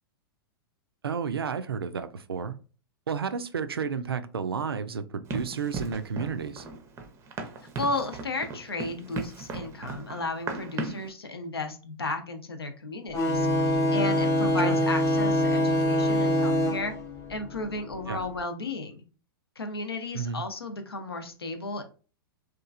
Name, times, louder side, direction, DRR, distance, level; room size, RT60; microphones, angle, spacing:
voice 1, 1.0-2.5 3.1-6.7 14.6-14.8 18.1-18.2 20.1-20.4, right 6 dB, 80° right, 0.4 m, -31 dB
Run, 5.3-11.1, right 4 dB, 20° right, 0.5 m, -37 dB
voice 2, 7.8-16.9 17.3-19.0 19.6-21.8, left 2 dB, 85° left, 0.6 m, -34 dB
sound 1, 13.1-18.3, left 1 dB, 25° left, 0.6 m, -25 dB
2.9 x 2.4 x 2.4 m
figure-of-eight pair, 105°, 12 cm